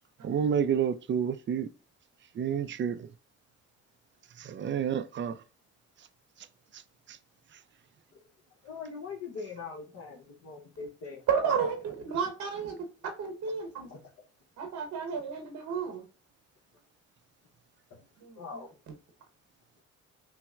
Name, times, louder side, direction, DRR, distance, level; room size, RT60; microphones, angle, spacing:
voice 1, 0.2-1.7 2.4-3.1 4.4-5.4, right 8 dB, 40° right, 0.5 m, -29 dB
voice 2, 8.6-11.7 13.9-14.0 17.9-18.0 18.3-18.7, left 5 dB, 60° left, 1.1 m, -42 dB
voice 3, 11.3-13.9 14.6-16.0 18.2-18.6, right 6 dB, 75° right, 1.0 m, -32 dB
5.6 x 2.1 x 2.4 m
cardioid pair, 80°, 30 cm